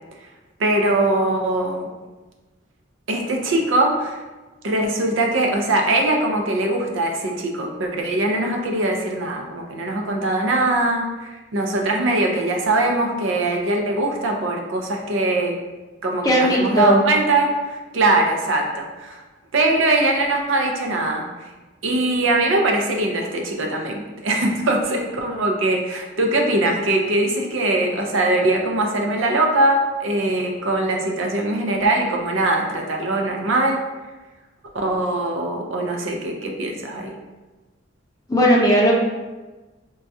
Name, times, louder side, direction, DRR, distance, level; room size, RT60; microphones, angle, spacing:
voice 1, 0.6-1.9 3.1-4.2 4.6-15.6 16.0-19.2 19.5-21.2 21.8-33.8 34.7-37.1, right 2 dB, 80° right, 2 dB, 0.5 m, -21 dB
voice 2, 16.2-17.0 38.3-38.9, equal, 20° left, -3 dB, 0.6 m, -16 dB
4.3 x 2.3 x 2.6 m, 1.2 s
head